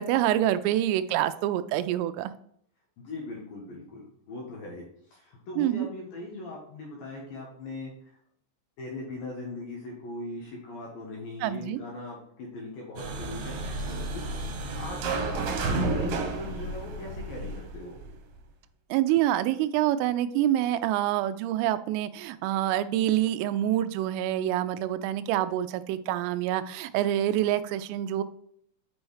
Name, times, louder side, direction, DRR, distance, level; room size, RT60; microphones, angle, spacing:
voice 1, 0.0-2.3 5.6-5.9 11.4-11.8 18.9-28.2, right 12 dB, 90° right, 13 dB, 3.2 m, -26 dB
voice 2, 3.0-8.2 8.8-14.5 14.8-18.0, left 2 dB, 70° left, -2 dB, 2.3 m, -40 dB
sound 1, 13.0-18.2, right 3 dB, 70° right, 2.8 m, -31 dB
7.4 x 6.2 x 3.2 m, 0.67 s
omnidirectional pair, 5.8 m